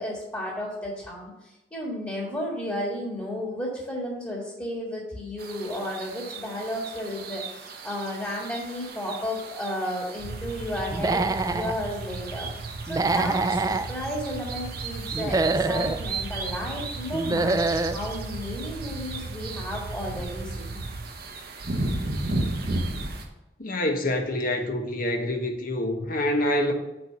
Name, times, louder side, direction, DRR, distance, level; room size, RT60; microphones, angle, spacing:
voice 1, 0.0-20.8, left 1 dB, 15° left, -3 dB, 1.7 m, -33 dB
sound 1, 5.4-23.2, right 2 dB, 55° right, 1.1 m, -35 dB
sound 2, 10.2-21.0, right 3 dB, 80° right, 0.8 m, -37 dB
Human voice / Animal, 10.9-11.7 12.9-13.9 15.1-16.0 17.1-18.0, right 3 dB, 20° right, 0.3 m, -25 dB
voice 2, 23.6-26.7, left 1 dB, 50° left, 3 dB, 1.1 m, -26 dB
6.3 x 4.6 x 6.6 m, 0.94 s
head